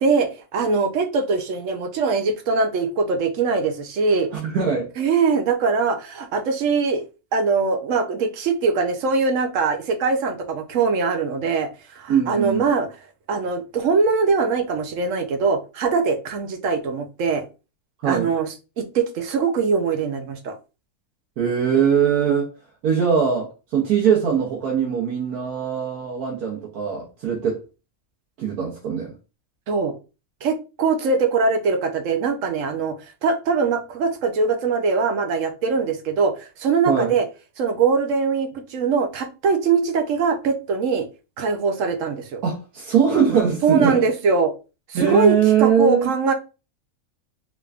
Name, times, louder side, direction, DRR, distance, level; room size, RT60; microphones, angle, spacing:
voice 1, 0.0-4.3 5.0-7.1 7.3-12.9 13.3-17.4 18.0-20.6 29.7-30.0 30.4-33.0 33.2-37.3 37.6-41.1 41.4-42.4 43.6-44.5 44.9-46.3, right 4 dB, 65° right, 0.9 m, -22 dB
voice 2, 4.3-4.9 12.1-12.6 18.0-18.3 21.4-22.5 22.8-27.6 28.4-29.1 36.9-37.1 42.4-44.0 44.9-46.1, right 7 dB, 90° right, 1.4 m, -21 dB
3.6 x 3.3 x 2.4 m
omnidirectional pair, 1.5 m